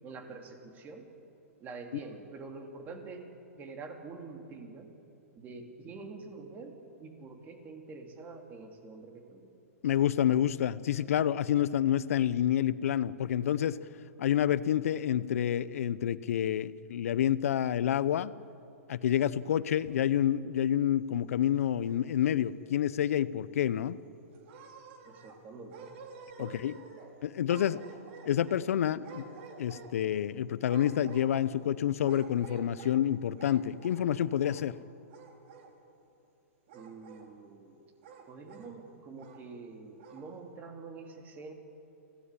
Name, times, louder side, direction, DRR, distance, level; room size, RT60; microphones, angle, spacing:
voice 1, 0.0-1.1 1.6-3.3 3.6-4.9 5.4-9.5 25.0-26.0 26.4-26.6 26.9-27.0 36.7-37.8 38.3-41.5, right 4 dB, 20° right, 4 dB, 2.8 m, -46 dB
voice 2, 9.8-13.8 14.2-18.3 18.9-24.0 26.4-26.7 27.2-27.8 28.2-29.2 29.6-34.8, left 10 dB, 70° left, 17 dB, 0.8 m, -28 dB
sound 1, 21.5-22.4 22.8-22.9 23.3-23.4 24.3-25.4 25.7-27.1 27.5-28.6 29.0-30.1 30.6-31.6 32.0-33.0 33.3-34.1 34.4-34.8 35.1-35.7 36.7-37.3 38.0-38.7 39.2-39.4 39.9-40.3, right 5 dB, 50° right, 3.4 m, -50 dB
24.5 x 17.0 x 9.9 m, 2.9 s
hypercardioid pair, 145°, 8 cm